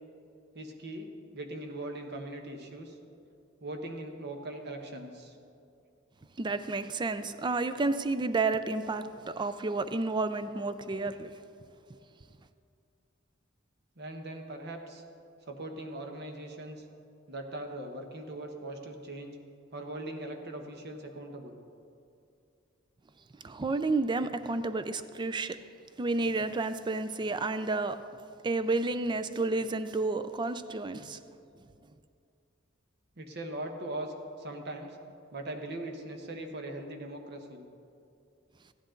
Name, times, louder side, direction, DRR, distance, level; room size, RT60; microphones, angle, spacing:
voice 1, 0.5-3.0 3.6-5.4 14.0-15.0 15.5-16.8 17.3-19.4 19.7-21.6 33.2-35.0 35.3-37.7, right 1 dB, 55° right, 4 dB, 1.1 m, -40 dB
voice 2, 6.4-11.3 23.4-25.6 26.0-28.0 28.4-31.2, right 3 dB, 20° right, 12 dB, 0.4 m, -31 dB
14.5 x 10.5 x 3.8 m, 2.5 s
head